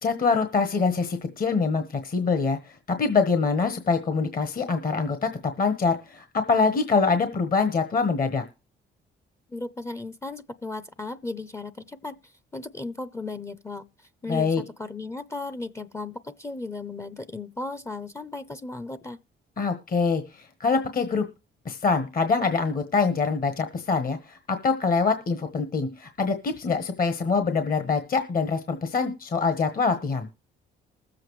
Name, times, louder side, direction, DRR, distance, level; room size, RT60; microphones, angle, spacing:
voice 1, 0.0-5.3 5.6-8.4 14.3-14.6 19.6-21.2 21.6-30.3, left 4 dB, 45° left, 1.2 m, -24 dB
voice 2, 9.5-13.8 14.2-19.2, left 3 dB, 15° left, 0.5 m, -36 dB
20.5 x 7.6 x 3.2 m
cardioid pair, 90°, 20 cm